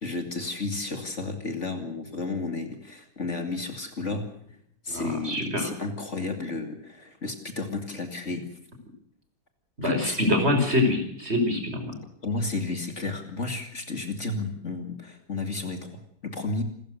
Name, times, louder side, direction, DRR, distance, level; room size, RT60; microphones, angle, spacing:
voice 1, 0.0-4.3 4.8-8.4 9.8-10.3 12.2-16.6, left 3 dB, 45° left, 6 dB, 2.8 m, -32 dB
voice 2, 4.9-5.7 9.8-12.0, left 1 dB, 40° right, 5 dB, 5.9 m, -25 dB
28.5 x 14.5 x 6.6 m, 0.69 s
omnidirectional pair, 1.7 m